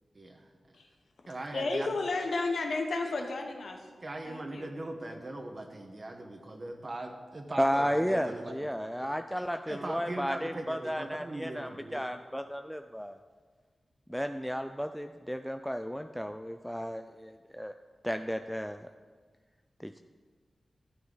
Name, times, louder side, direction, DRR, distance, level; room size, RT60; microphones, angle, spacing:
voice 1, 0.1-0.5 1.3-1.9 4.0-8.7 9.7-12.0, right 2 dB, 35° right, 5 dB, 1.1 m, -40 dB
voice 2, 1.5-3.8 4.2-4.7, left 3 dB, 75° left, 3 dB, 1.2 m, -32 dB
voice 3, 7.6-13.2 14.1-17.7 18.0-18.8 19.8-20.0, equal, ahead, 7 dB, 0.3 m, -33 dB
12.5 x 8.7 x 3.9 m, 1.5 s
wide cardioid pair, 115°, 0 cm